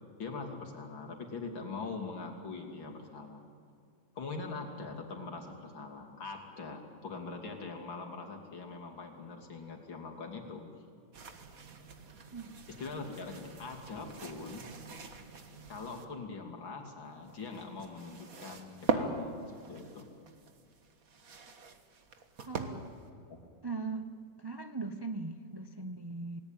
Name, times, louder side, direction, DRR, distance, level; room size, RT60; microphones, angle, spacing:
voice 1, 0.2-3.4 4.2-10.6 12.8-14.7 15.7-19.4 19.7-20.1, left 4 dB, 85° left, 2 dB, 3.6 m, -42 dB
sound 1, 11.1-16.0 17.1-23.1, right 4 dB, 50° right, 1.9 m, -41 dB
voice 2, 22.5-22.9 23.6-24.1 24.4-26.4, right 3 dB, 35° right, 8 dB, 0.4 m, -39 dB
28.5 x 19.0 x 8.9 m, 2.3 s
omnidirectional pair, 2.1 m